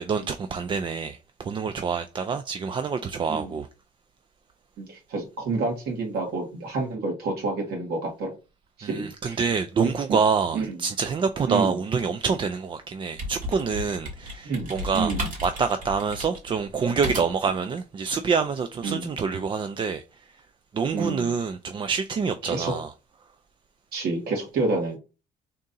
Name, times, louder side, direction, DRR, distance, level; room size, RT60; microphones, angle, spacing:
voice 1, 0.0-3.7 8.8-20.0 20.7-22.9, right 5 dB, 30° right, 0.3 m, -26 dB
voice 2, 4.8-8.3 8.8-9.4 9.8-9.9 10.5-10.8 11.5-11.8 14.4-15.3 18.8-19.1 20.9-21.3 22.4-22.7 23.9-25.0, right 3 dB, 70° right, 1.8 m, -29 dB
sound 1, 12.9-17.6, equal, 50° right, 2.5 m, -34 dB
3.7 x 2.7 x 3.8 m
cardioid pair, 110°, 17 cm